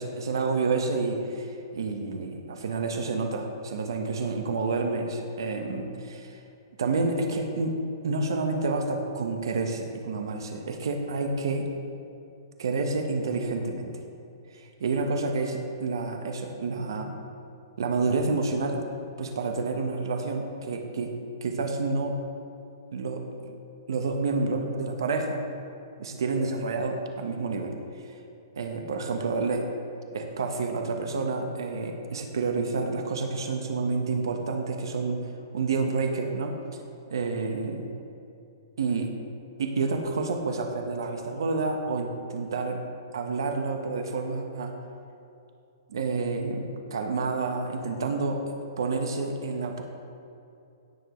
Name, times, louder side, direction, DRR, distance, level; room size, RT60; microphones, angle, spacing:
voice 1, 0.0-6.4 6.8-7.7 8.0-11.6 12.6-13.9 14.5-17.1 17.8-18.8 19.2-21.1 21.4-22.2 22.9-23.5 23.9-25.4 26.0-28.1 28.6-29.7 30.1-35.2 35.5-36.5 37.1-37.9 38.8-39.1 39.6-42.8 43.1-44.7 45.9-49.8, right 3 dB, 80° right, 4 dB, 1.2 m, -29 dB
17.0 x 7.2 x 3.2 m, 2.7 s
hypercardioid pair, 170°, 2 cm